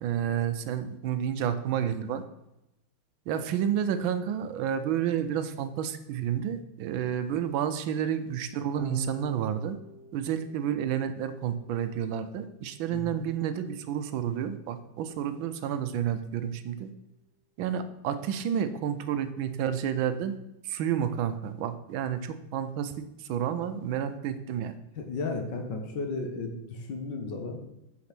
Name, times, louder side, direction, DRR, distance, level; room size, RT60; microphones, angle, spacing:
voice 1, 0.0-2.2 3.3-9.8 10.1-16.9 17.6-20.4 20.6-24.8, right 9 dB, 80° right, 11 dB, 1.4 m, -30 dB
Electric guitar / Bass guitar, 8.8-15.2, right 1 dB, ahead, 2.3 m, -48 dB
voice 2, 12.9-13.2 25.0-27.6, left 3 dB, 60° left, 4 dB, 1.8 m, -34 dB
8.6 x 5.2 x 6.0 m, 0.87 s
omnidirectional pair, 2.2 m